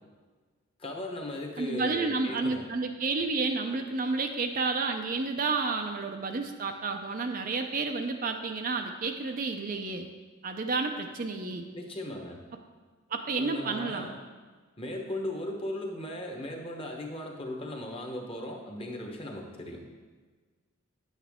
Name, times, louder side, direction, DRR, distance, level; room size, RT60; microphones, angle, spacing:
voice 1, 0.8-2.7 11.7-12.4 13.4-14.2 14.8-19.9, left 1 dB, 25° left, 2 dB, 1.0 m, -37 dB
voice 2, 1.6-10.1 10.4-11.7 13.1-14.1, right 3 dB, 40° right, 5 dB, 0.5 m, -31 dB
9.4 x 8.0 x 3.6 m, 1.4 s
head